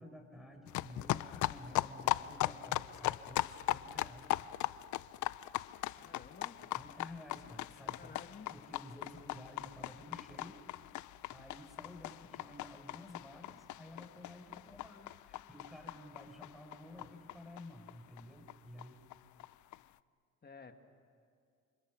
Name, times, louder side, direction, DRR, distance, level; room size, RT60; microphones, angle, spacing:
voice 1, 0.0-4.5 6.7-8.1 8.5-10.6 11.3-19.0, left 1 dB, ahead, 4 dB, 5.0 m, -52 dB
sound 1, 0.7-17.9 18.2-18.3 18.5-18.6 18.8-18.9 19.1-19.8, left 15 dB, 75° left, 0.5 m, -39 dB
voice 2, 6.0-6.6 8.0-8.5 20.4-20.8, left 5 dB, 30° left, 6 dB, 1.9 m, -53 dB
28.5 x 25.5 x 6.4 m, 2.3 s
cardioid pair, 90°, 30 cm